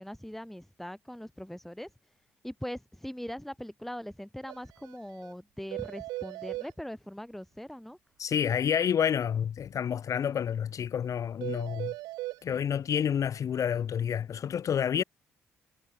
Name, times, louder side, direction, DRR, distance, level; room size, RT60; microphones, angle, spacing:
voice 1, 0.0-1.9 2.4-8.0, equal, 5° left, 2.4 m, -41 dB
sound 1, 4.5-4.6 4.8-5.0 5.2-5.3 5.7-6.7 11.4-12.4, right 19 dB, 65° right, 0.6 m, -37 dB
voice 2, 8.2-11.9 12.4-15.0, left 8 dB, 50° left, 1.2 m, -29 dB
figure-of-eight pair, 40°, 7 cm